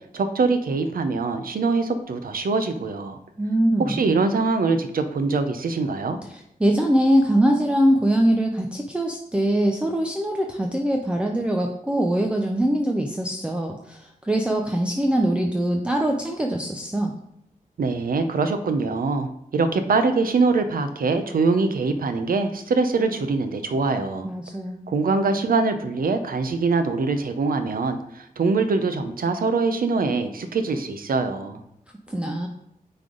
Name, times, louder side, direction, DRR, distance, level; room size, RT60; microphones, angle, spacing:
voice 1, 0.1-3.2 3.8-6.2 17.8-24.3 24.9-31.6, right 4 dB, 75° right, 8 dB, 0.7 m, -23 dB
voice 2, 3.4-4.0 6.3-17.1 24.2-24.9 32.1-32.5, right 1 dB, 5° right, 1 dB, 0.5 m, -22 dB
9.3 x 3.5 x 3.8 m, 0.77 s
wide cardioid pair, 165°, 15 cm